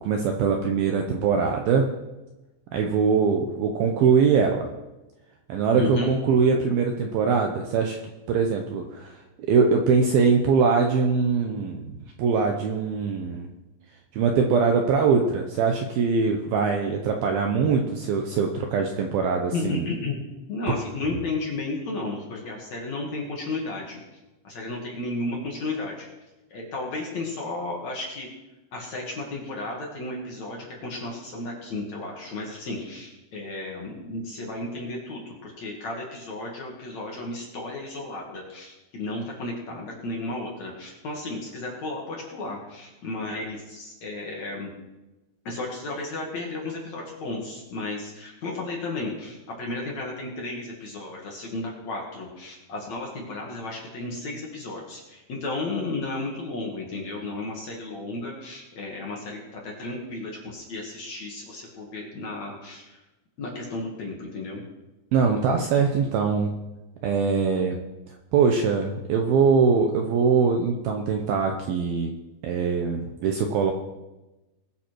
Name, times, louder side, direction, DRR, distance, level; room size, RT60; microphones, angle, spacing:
voice 1, 0.0-1.9 2.7-4.7 5.5-8.0 8.3-11.9 12.2-13.5 14.1-19.9 20.7-20.8 65.1-66.6 67.0-67.8 68.3-72.1 72.4-73.7, right 5 dB, 75° right, 3 dB, 2.3 m, -22 dB
voice 2, 5.8-6.1 19.5-20.2 20.5-24.0 24.4-26.1 26.5-28.3 28.7-44.7 45.5-62.8 63.4-64.6, left 2 dB, 50° left, -2 dB, 2.5 m, -33 dB
21.0 x 7.1 x 4.6 m, 1.0 s
omnidirectional pair, 5.2 m